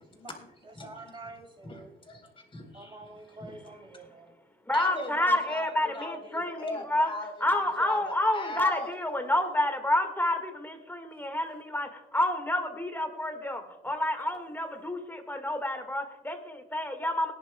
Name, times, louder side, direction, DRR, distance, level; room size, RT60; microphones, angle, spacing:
voice 1, 0.0-2.0 2.7-4.4, right 2 dB, 25° right, 2 dB, 3.3 m, -48 dB
voice 2, 1.6-3.0 3.4-3.5 4.7-8.9 14.3-14.4, left 2 dB, 25° left, 1 dB, 4.2 m, -38 dB
voice 3, 4.7-7.1 7.4-17.3, left 1 dB, 10° left, 6 dB, 1.8 m, -29 dB
21.0 x 10.5 x 2.3 m, 1.0 s
cardioid pair, 90°, 20 cm